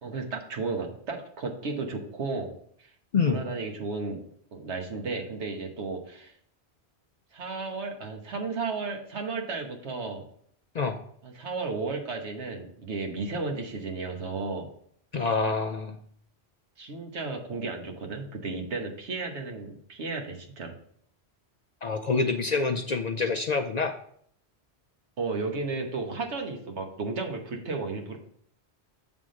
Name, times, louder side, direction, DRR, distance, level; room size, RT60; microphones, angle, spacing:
voice 1, 0.0-2.5 3.2-4.2 4.5-6.3 7.3-10.2 11.2-14.7 16.8-20.7 25.2-28.2, right 3 dB, 85° right, 3 dB, 1.5 m, -33 dB
voice 2, 15.1-16.0 21.8-23.9, left 4 dB, 55° left, 5 dB, 0.5 m, -26 dB
7.5 x 3.6 x 6.3 m, 0.64 s
omnidirectional pair, 1.1 m